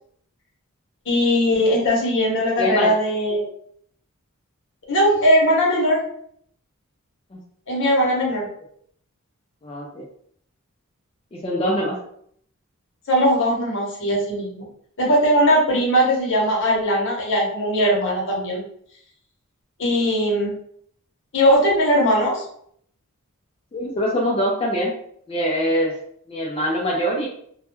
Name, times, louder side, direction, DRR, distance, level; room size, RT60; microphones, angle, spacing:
voice 1, 1.1-3.5 4.9-6.0 7.7-8.4 13.1-14.7 15.0-18.6 19.8-20.5 21.3-22.4, equal, 60° left, -3 dB, 0.8 m, -19 dB
voice 2, 2.6-2.9 7.3-7.4 9.6-10.0 11.3-12.0 23.7-24.9 25.3-25.9 26.3-27.3, equal, 25° left, -3 dB, 0.4 m, -23 dB
2.2 x 2.1 x 2.9 m, 0.65 s
head